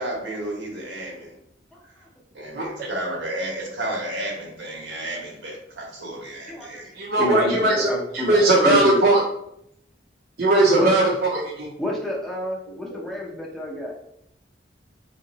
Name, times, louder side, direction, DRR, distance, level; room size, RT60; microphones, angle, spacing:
voice 1, 0.0-1.3 1.8-1.9 2.3-6.9 7.2-7.5 12.7-13.0, right 1 dB, 90° right, -2 dB, 1.4 m, -32 dB
voice 2, 2.5-2.9 7.0-7.9 8.1-9.2 10.4-11.7, right 2 dB, 55° right, -3 dB, 0.6 m, -19 dB
voice 3, 6.5-6.9 7.2-9.0 10.8-11.1 11.8-13.9, left 1 dB, ahead, -3 dB, 0.6 m, -28 dB
3.7 x 2.8 x 4.0 m, 0.76 s
head